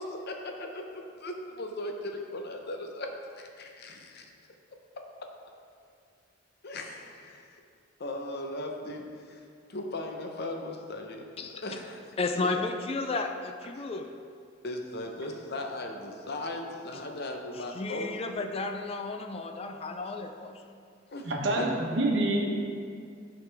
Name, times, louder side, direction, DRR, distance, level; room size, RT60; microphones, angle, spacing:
voice 1, 0.0-4.3 5.0-5.3 6.6-7.6 8.0-9.4 9.7-11.3 11.5-12.2 13.8-13.9 14.6-18.1 21.1-21.7, left 1 dB, 55° left, 3 dB, 0.8 m, -38 dB
voice 2, 12.2-14.1 17.8-20.5, left 3 dB, 30° left, 5 dB, 0.3 m, -33 dB
voice 3, 21.2-22.6, right 1 dB, 65° right, 0 dB, 1.1 m, -27 dB
10.5 x 5.0 x 3.4 m, 2.3 s
head